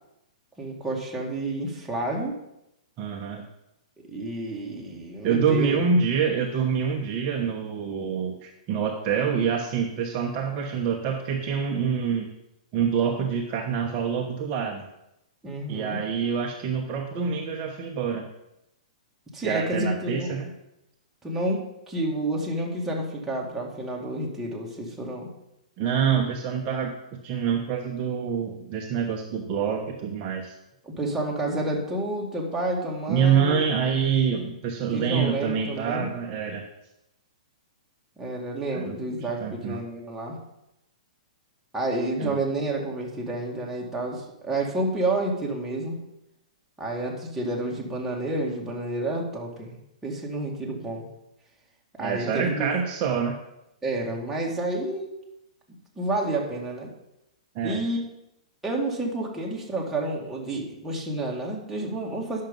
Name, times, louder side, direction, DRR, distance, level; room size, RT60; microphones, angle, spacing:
voice 1, 0.6-2.4 4.1-5.8 15.4-16.0 19.3-20.4 21.2-25.3 30.8-33.6 34.9-36.1 38.2-40.4 41.7-46.0 46.8-51.1 52.0-52.7 53.8-55.1 56.0-56.9 57.6-58.0 58.6-62.4, right 1 dB, 5° right, -3 dB, 2.3 m, -29 dB
voice 2, 3.0-3.4 5.2-12.3 12.7-14.9 15.7-18.2 19.4-20.5 25.8-26.9 27.2-30.5 33.1-36.6 38.7-39.0 39.4-39.8 42.2-42.4 52.0-53.4 57.5-57.8, right 6 dB, 35° right, 1 dB, 1.1 m, -26 dB
10.5 x 6.6 x 5.5 m, 0.85 s
hypercardioid pair, 135°, 4 cm